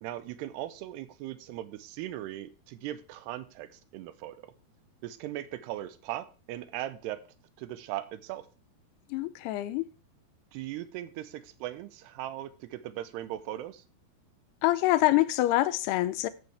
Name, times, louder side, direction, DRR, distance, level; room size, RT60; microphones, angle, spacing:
voice 1, 0.0-4.5 5.0-7.2 7.6-8.5 10.5-13.8, right 13 dB, 90° right, 2.8 m, -39 dB
voice 2, 9.1-9.9 14.6-16.3, left 16 dB, 85° left, 2.6 m, -25 dB
14.5 x 7.0 x 3.4 m
omnidirectional pair, 4.7 m